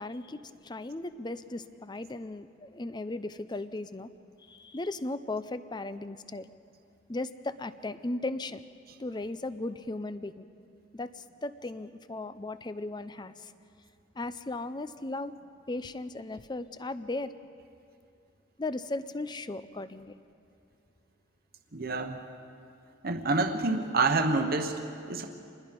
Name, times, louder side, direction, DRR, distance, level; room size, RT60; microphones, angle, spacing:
voice 1, 0.0-4.1 4.4-6.5 7.1-8.6 9.0-10.4 10.9-13.5 14.1-15.3 15.7-17.3 18.6-20.1, left 2 dB, 20° left, 13 dB, 0.5 m, -36 dB
voice 2, 21.7-22.2 23.0-24.8 25.0-25.2, right 3 dB, 50° right, 5 dB, 1.1 m, -27 dB
27.0 x 20.5 x 5.3 m, 2.5 s
head